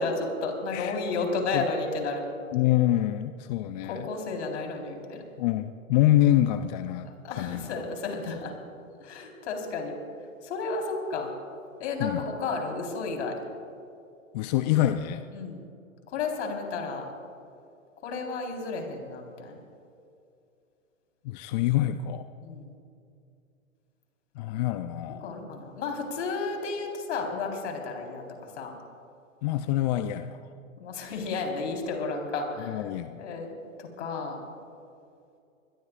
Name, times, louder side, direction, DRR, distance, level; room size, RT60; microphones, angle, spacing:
voice 1, 0.0-2.2 3.9-5.2 7.2-8.5 9.0-10.0 10.4-11.3 11.8-13.3 15.3-15.6 16.1-17.0 18.0-19.5 22.4-22.7 25.0-28.2 28.6-28.7 30.8-32.8 33.1-33.5 33.8-34.5, left 3 dB, 60° left, 2 dB, 4.2 m, -32 dB
voice 2, 2.5-4.1 5.4-7.7 12.0-12.2 14.3-15.2 21.2-22.3 24.4-25.3 29.4-30.4 32.7-33.2, left 13 dB, 35° left, 11 dB, 0.5 m, -26 dB
25.0 x 21.0 x 2.5 m, 2.5 s
hypercardioid pair, 115°, 40 cm